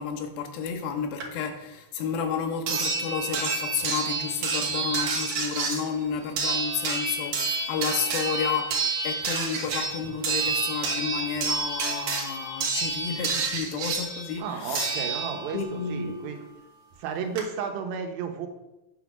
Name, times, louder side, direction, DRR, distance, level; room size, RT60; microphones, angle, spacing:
voice 1, 0.0-14.9 15.5-16.2, left 6 dB, 85° left, 2.7 m, -31 dB
sound 1, 1.2-1.3 2.7-15.7 16.9-17.0 17.4-17.5, right 4 dB, 60° right, 2.1 m, -29 dB
voice 2, 14.4-16.4 17.0-18.5, right 6 dB, 80° right, 2.7 m, -33 dB
9.0 x 4.1 x 5.9 m
omnidirectional pair, 4.1 m